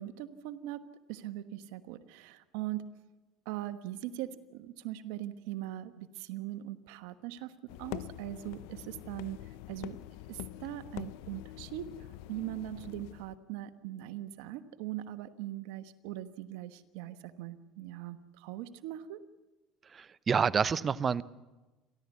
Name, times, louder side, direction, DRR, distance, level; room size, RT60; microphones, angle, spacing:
voice 1, 0.0-2.8 3.4-9.4 9.7-10.0 10.3-11.9 12.3-19.2, right 13 dB, 80° right, 12 dB, 1.2 m, -41 dB
sound 1, 7.7-13.4, left 17 dB, 80° left, 0.6 m, -45 dB
voice 2, 19.9-21.2, right 6 dB, 30° right, 18 dB, 0.7 m, -28 dB
29.0 x 12.0 x 8.3 m, 1.1 s
supercardioid pair, 100°, 0 cm